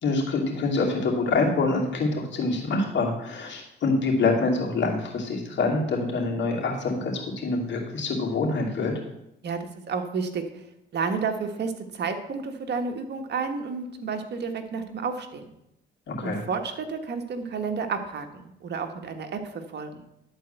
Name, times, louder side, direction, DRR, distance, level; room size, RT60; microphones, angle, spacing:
voice 1, 0.0-8.9 16.1-16.4, left 3 dB, 65° left, 0 dB, 2.7 m, -26 dB
voice 2, 9.4-10.7 10.9-15.5 16.2-20.0, right 5 dB, 60° right, 6 dB, 1.4 m, -31 dB
11.5 x 4.5 x 7.9 m, 0.84 s
cardioid pair, 90°, 20 cm